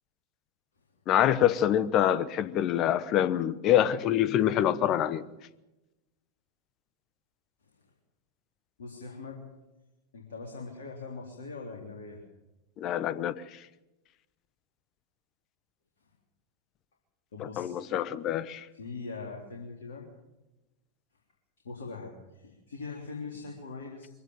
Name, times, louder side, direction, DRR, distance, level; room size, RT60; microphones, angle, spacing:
voice 1, 1.1-5.2 12.8-13.4 17.4-18.7, left 11 dB, 35° left, 1.0 m, -26 dB
voice 2, 8.8-9.5 10.1-12.2 17.3-17.8 18.7-20.1 21.6-24.1, left 4 dB, 65° left, 3.5 m, -41 dB
23.0 x 16.0 x 7.3 m
figure-of-eight pair, 90°, 0 cm